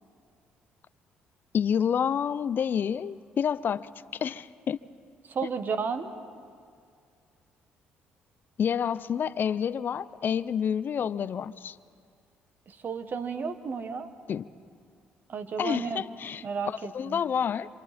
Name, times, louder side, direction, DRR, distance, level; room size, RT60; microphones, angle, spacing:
voice 1, 1.5-3.9 4.2-4.8 8.6-11.8 14.3-14.4 15.6-17.7, left 8 dB, 50° left, 0.6 m, -28 dB
voice 2, 5.3-6.1 12.7-14.1 15.3-16.0 16.4-17.2, right 5 dB, 50° right, 1.5 m, -33 dB
27.0 x 26.0 x 4.3 m
supercardioid pair, 65°, 4 cm